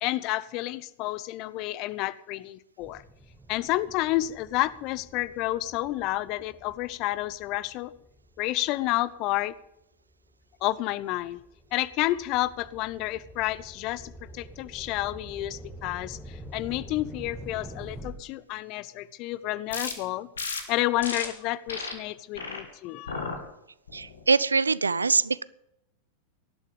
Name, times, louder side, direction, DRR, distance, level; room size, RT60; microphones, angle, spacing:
voice 1, 0.0-3.0 3.5-7.9 8.4-9.5 10.6-11.4 11.7-20.3 20.7-23.2, left 17 dB, 40° left, 19 dB, 0.7 m, -30 dB
Freak Ambience, 2.8-9.5 10.1-18.1, right 1 dB, ahead, 2.6 m, -46 dB
sound 1, 19.7-19.9 20.4-20.6 21.0-21.3 21.7-21.9 22.3-22.6 23.1-23.4 23.9-24.2, left 4 dB, 70° left, 2.6 m, -33 dB
voice 2, 23.9-25.4, right 4 dB, 75° right, 20 dB, 0.5 m, -23 dB
19.0 x 12.0 x 5.1 m, 0.82 s
figure-of-eight pair, 90°, 0 cm